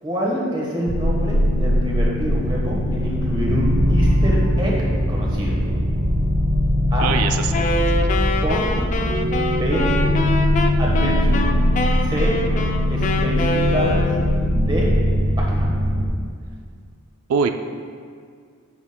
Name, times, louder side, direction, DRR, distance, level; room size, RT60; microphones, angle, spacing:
voice 1, 0.0-4.7 5.1-5.6 6.9-7.1 8.4-8.7 9.5-9.8 10.8-11.4 12.0-12.3 12.9-14.0 14.6-14.9 15.4-15.7, equal, 20° right, -3 dB, 1.2 m, -26 dB
sound 1, 0.9-16.1, equal, 50° right, 1.0 m, -20 dB
voice 2, 7.0-8.0 17.3-17.5, right 6 dB, 85° right, 7 dB, 0.4 m, -23 dB
Wind instrument woodwind instrument, 7.5-14.5, left 2 dB, 35° left, 0.3 m, -25 dB
9.6 x 7.0 x 2.2 m, 2.1 s
head